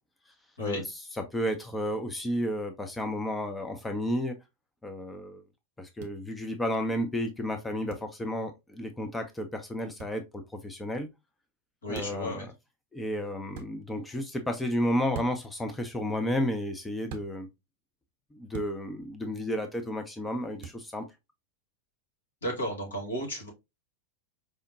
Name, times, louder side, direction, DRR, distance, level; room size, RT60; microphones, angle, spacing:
voice 1, 0.6-4.4 4.8-5.4 5.8-11.1 11.9-12.5 12.9-17.5 18.3-21.1, equal, 10° left, 0.5 m, -32 dB
sound 1, 6.0-6.1 7.9-8.1 10.0-10.2 11.9-12.3 13.5-13.7 15.1-15.5 17.1-17.3 18.5-18.8 20.6-20.8, right 7 dB, 50° right, 0.7 m, -42 dB
voice 2, 11.8-12.5 22.4-23.5, equal, 70° left, 1.4 m, -33 dB
4.9 x 2.1 x 2.6 m
figure-of-eight pair, 90°, 0 cm